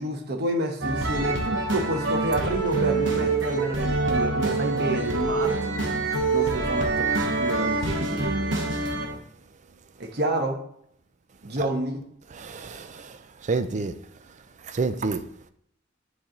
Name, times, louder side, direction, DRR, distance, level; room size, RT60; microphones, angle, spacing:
voice 1, 0.0-5.7 6.3-8.3 10.0-10.6 11.4-12.0, right 1 dB, 60° right, 1.1 m, -29 dB
sound 1, 0.8-9.2, right 3 dB, 75° right, 1.1 m, -25 dB
voice 2, 12.3-14.0 14.7-15.2, right 4 dB, 40° right, 0.5 m, -29 dB
8.6 x 3.3 x 3.9 m
head